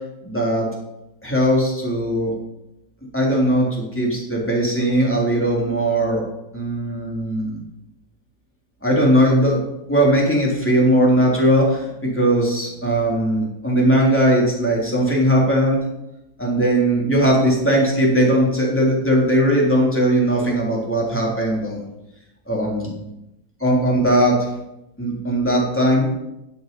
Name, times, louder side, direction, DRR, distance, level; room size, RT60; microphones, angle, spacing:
voice 1, 0.2-0.7 1.2-2.3 3.1-6.2 6.5-7.6 8.8-9.6 9.9-15.8 16.4-21.8 22.5-22.9 23.6-24.4 25.0-26.1, right 1 dB, 5° left, -3 dB, 3.5 m, -19 dB
13.0 x 7.8 x 5.4 m, 0.90 s
omnidirectional pair, 2.0 m